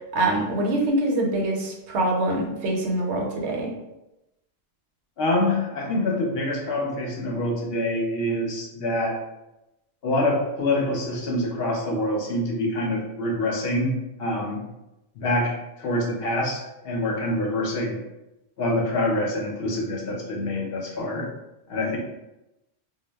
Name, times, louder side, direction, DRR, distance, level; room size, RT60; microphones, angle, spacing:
voice 1, 0.1-3.7, right 1 dB, 85° right, 0 dB, 0.9 m, -24 dB
voice 2, 5.2-9.2 10.0-14.7 15.2-18.0 18.6-21.3 21.7-22.0, left 1 dB, 65° left, 0 dB, 0.8 m, -26 dB
2.2 x 2.0 x 3.2 m, 0.93 s
omnidirectional pair, 1.1 m